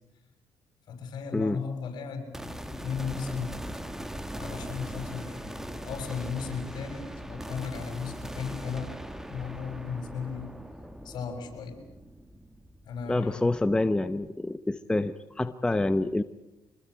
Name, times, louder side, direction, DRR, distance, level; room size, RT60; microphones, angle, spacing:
voice 1, 0.9-3.6 4.4-8.9 9.2-10.6 11.0-11.8 12.8-13.5, left 6 dB, 60° left, 5 dB, 6.8 m, -36 dB
sound 1, 2.3-13.7, equal, 5° right, 1.7 m, -40 dB
voice 2, 13.1-16.2, left 2 dB, 10° left, 10 dB, 0.9 m, -27 dB
25.0 x 21.0 x 8.1 m, 0.97 s
cardioid pair, 105°, 8 cm